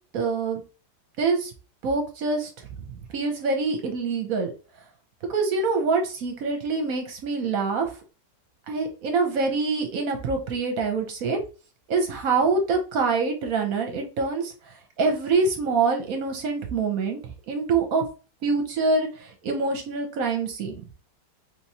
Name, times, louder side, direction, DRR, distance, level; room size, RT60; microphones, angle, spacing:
voice 1, 0.1-0.6 1.2-1.5 1.8-2.5 2.9-4.5 5.3-7.9 8.7-11.4 11.9-18.0 18.4-20.8, right 4 dB, 65° right, 4 dB, 1.0 m, -25 dB
3.4 x 3.0 x 2.7 m, 0.34 s
omnidirectional pair, 1.9 m